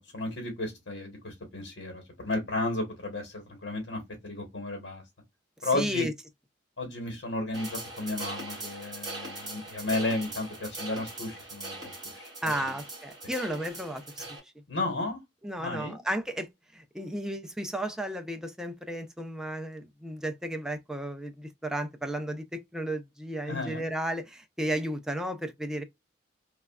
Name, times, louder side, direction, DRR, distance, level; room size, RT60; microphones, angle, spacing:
voice 1, 0.0-5.0 5.6-6.1 6.8-12.3 14.7-15.2 15.6-16.0 23.5-23.8, left 2 dB, 75° left, 1.1 m, -33 dB
voice 2, 5.6-6.1 12.4-14.5 15.4-25.8, equal, 5° right, 0.4 m, -34 dB
sound 1, 7.5-14.4, right 2 dB, 20° right, 1.7 m, -41 dB
3.1 x 2.3 x 2.3 m
head